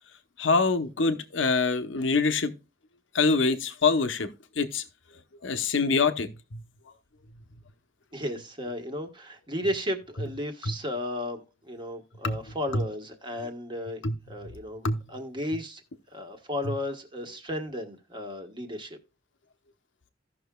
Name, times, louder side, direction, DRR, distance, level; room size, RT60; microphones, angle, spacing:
voice 1, 0.4-2.5 3.1-4.8 5.4-6.6 10.6-10.7 12.2-12.4 12.7-12.8 14.0-14.1 14.8-15.0 16.6-16.7, left 4 dB, 85° left, 0.9 m, -25 dB
voice 2, 8.1-14.0 14.3-15.8 16.1-19.0, left 1 dB, 25° right, 1.3 m, -34 dB
16.0 x 6.0 x 2.3 m
head